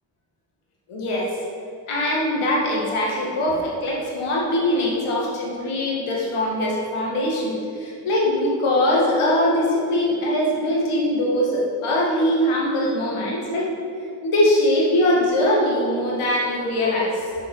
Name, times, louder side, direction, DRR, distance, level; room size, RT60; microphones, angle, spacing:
voice 1, 0.9-1.3 1.9-13.7 14.2-17.3, left 1 dB, 80° left, -3 dB, 1.9 m, -22 dB
6.5 x 6.1 x 5.5 m, 2.7 s
supercardioid pair, 45°, 49 cm